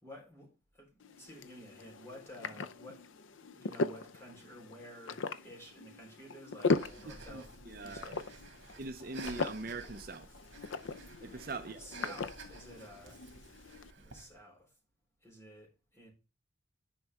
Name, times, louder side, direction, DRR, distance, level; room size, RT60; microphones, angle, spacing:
voice 1, 0.0-3.0 3.4-7.5 7.8-8.3 11.6-13.2 14.0-14.7 15.2-16.1, equal, 15° left, 3.9 m, -52 dB
sound 1, 1.0-13.9, left 3 dB, 80° left, 0.6 m, -39 dB
Breathing, 6.7-14.4, right 4 dB, 65° right, 2.3 m, -52 dB
voice 2, 7.1-8.2 8.8-10.3 11.2-12.1, right 3 dB, 50° right, 0.6 m, -43 dB
10.5 x 5.4 x 3.5 m
head